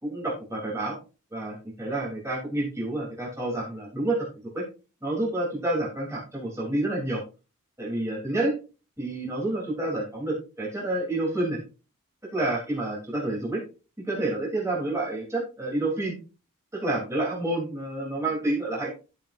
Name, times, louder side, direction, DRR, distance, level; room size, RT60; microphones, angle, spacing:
voice 1, 0.0-1.0 1.3-4.2 4.5-4.6 5.0-7.2 7.8-8.6 9.0-11.6 12.3-13.6 14.1-16.1 16.7-18.9, right 2 dB, 15° right, -4 dB, 3.2 m, -29 dB
11.5 x 7.3 x 2.6 m, 0.32 s
head